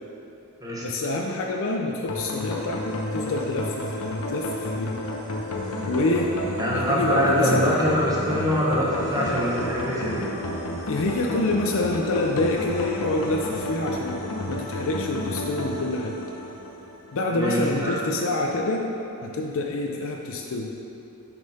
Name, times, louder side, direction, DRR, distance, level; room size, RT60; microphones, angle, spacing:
voice 1, 0.8-5.0 5.9-6.3 6.7-7.8 10.9-16.2 17.1-18.9 19.2-20.7, left 2 dB, 60° left, 0 dB, 0.5 m, -27 dB
sound 1, 2.1-17.1, left 1 dB, 85° left, 0.9 m, -31 dB
voice 2, 6.6-10.3 17.3-18.0, equal, 15° right, -5 dB, 1.2 m, -24 dB
6.9 x 5.4 x 4.2 m, 2.9 s
head